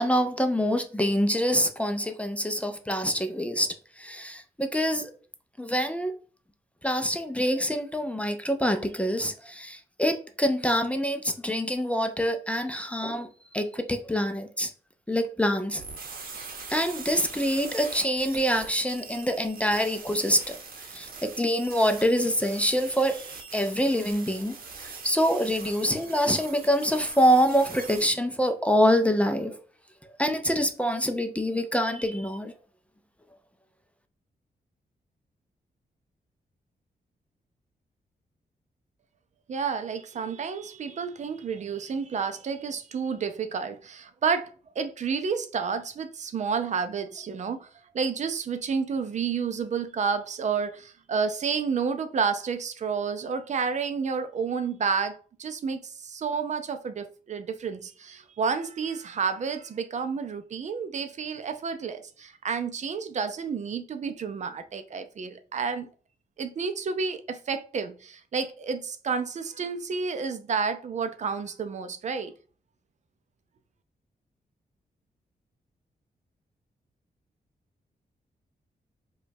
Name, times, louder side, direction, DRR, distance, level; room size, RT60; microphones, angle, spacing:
voice 1, 0.0-3.7 4.0-5.1 5.6-6.1 6.8-13.3 13.5-14.7 15.1-15.8 16.7-20.6 20.9-24.5 24.8-29.6 30.2-32.5, equal, 10° left, 0.4 m, -25 dB
sound 1, 15.8-28.1, right 4 dB, 65° right, 0.8 m, -42 dB
voice 2, 39.5-44.5 44.8-47.7 47.9-65.9 66.4-72.3, right 5 dB, 50° right, 0.5 m, -30 dB
4.9 x 2.3 x 2.7 m
wide cardioid pair, 115°, 16 cm